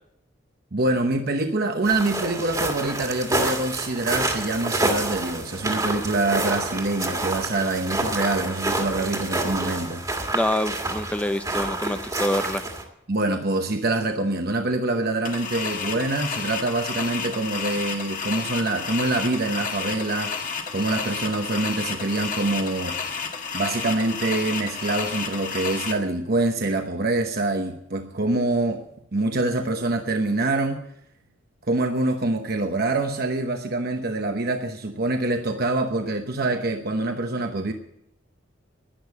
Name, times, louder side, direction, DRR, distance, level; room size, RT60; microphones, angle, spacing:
voice 1, 0.7-10.0 13.1-20.3 20.7-23.2 23.5-28.8 29.1-30.8 31.7-37.7, right 2 dB, 50° right, 5 dB, 0.9 m, -25 dB
sound 1, 1.8-12.8, right 2 dB, 20° right, 1.8 m, -28 dB
voice 2, 10.3-12.6, left 1 dB, 5° left, 10 dB, 0.5 m, -26 dB
sound 2, 15.3-25.9, left 5 dB, 40° left, 1.6 m, -31 dB
11.5 x 10.5 x 8.3 m, 0.79 s
head